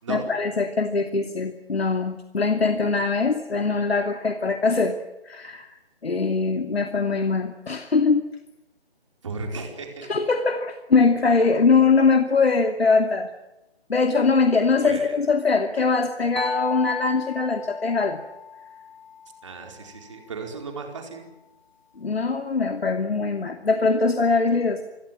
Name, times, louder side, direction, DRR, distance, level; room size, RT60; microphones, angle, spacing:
voice 1, 0.1-5.0 5.2-5.8 6.0-8.2 10.1-13.3 13.9-18.2 22.0-24.8, left 4 dB, 70° left, 6 dB, 2.7 m, -22 dB
voice 2, 9.2-10.1 14.8-15.2 19.4-21.3, right 4 dB, 30° right, 3 dB, 4.9 m, -35 dB
sound 1, 16.4-20.0, left 6 dB, 45° left, 4.0 m, -35 dB
27.5 x 23.5 x 7.7 m, 0.98 s
figure-of-eight pair, 175°, 32 cm